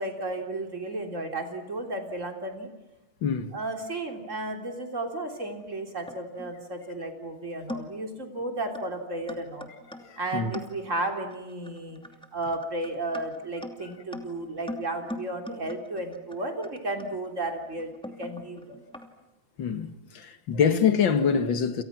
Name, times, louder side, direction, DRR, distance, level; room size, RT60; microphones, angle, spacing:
voice 1, 0.0-2.7 3.5-9.7 10.2-12.0 12.3-18.8, right 2 dB, 35° right, 3.8 m, -33 dB
voice 2, 3.2-3.5 10.0-10.5 19.6-21.8, left 6 dB, 65° left, 2.4 m, -25 dB
sound 1, 5.6-6.6 7.2-7.3 7.7-8.1 8.7-8.9 9.3-19.1, left 1 dB, ahead, 2.6 m, -42 dB
29.5 x 29.0 x 6.1 m
omnidirectional pair, 2.3 m